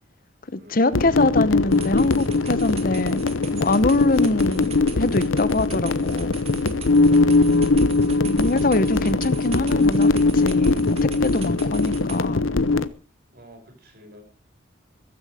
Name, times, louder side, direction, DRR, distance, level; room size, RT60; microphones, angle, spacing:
voice 1, 0.5-3.2 3.5-6.3 8.2-12.4, left 2 dB, 45° left, 16 dB, 0.8 m, -24 dB
sound 1, 0.9-12.9, left 3 dB, 80° left, 0.9 m, -21 dB
sound 2, 1.7-12.2, right 6 dB, 30° right, 2.0 m, -41 dB
voice 2, 6.9-7.9 13.3-14.2, equal, 50° right, 4 dB, 5.7 m, -48 dB
15.0 x 14.5 x 5.0 m, 0.36 s
head